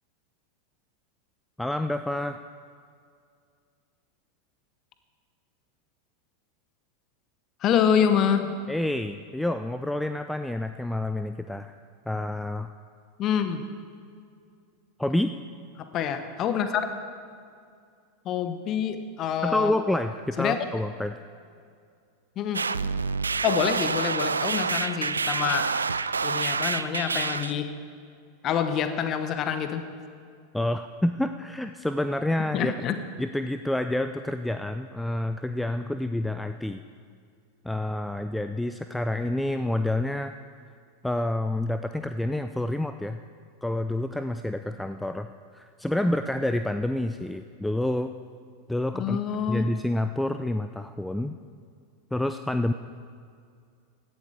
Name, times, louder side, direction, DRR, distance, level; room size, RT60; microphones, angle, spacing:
voice 1, 1.6-2.4 8.7-11.7 12.1-12.7 15.0-15.3 19.4-21.2 30.5-32.7 33.2-36.8 37.6-40.3 41.0-43.2 43.6-45.3 45.5-48.1 48.7-49.2 49.5-51.4 52.1-52.7, left 1 dB, 5° left, 9 dB, 0.5 m, -28 dB
voice 2, 7.6-8.6 13.2-13.6 15.8-16.8 18.2-19.7 20.4-20.6 22.4-22.6 23.4-25.7 26.2-27.7 28.4-29.8 32.5-33.0 48.9-49.7, left 8 dB, 40° left, 9 dB, 1.1 m, -26 dB
sound 1, 22.5-27.5, right 4 dB, 85° right, 0.3 m, -27 dB
16.0 x 12.0 x 5.0 m, 2.2 s
figure-of-eight pair, 85°, 0 cm